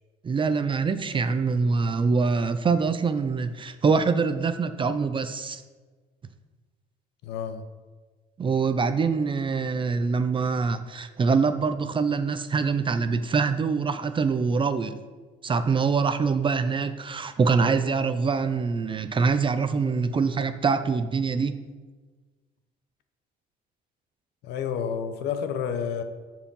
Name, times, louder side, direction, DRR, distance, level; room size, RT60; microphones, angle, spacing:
voice 1, 0.2-5.6 8.4-15.0 15.4-21.6, right 5 dB, 30° right, 10 dB, 0.6 m, -24 dB
voice 2, 7.2-7.6 24.4-26.0, left 7 dB, 85° left, 8 dB, 1.1 m, -30 dB
14.0 x 4.7 x 5.5 m, 1.4 s
cardioid pair, 110°, 17 cm